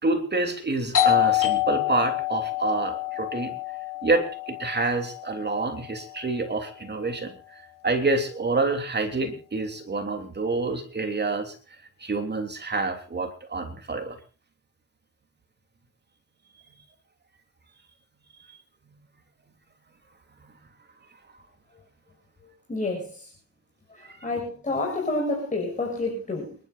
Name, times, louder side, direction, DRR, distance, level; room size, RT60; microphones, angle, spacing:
voice 1, 0.0-3.6 4.0-11.5 12.0-14.2 20.4-20.6 24.0-24.2, right 3 dB, 30° right, 6 dB, 3.3 m, -27 dB
Doorbell, 0.9-6.3, left 15 dB, 65° left, 5.5 m, -27 dB
voice 2, 22.7-23.3 23.9-26.6, left 2 dB, 20° left, 0 dB, 6.2 m, -29 dB
28.5 x 12.0 x 2.6 m, 0.34 s
cardioid pair, 95°, 35 cm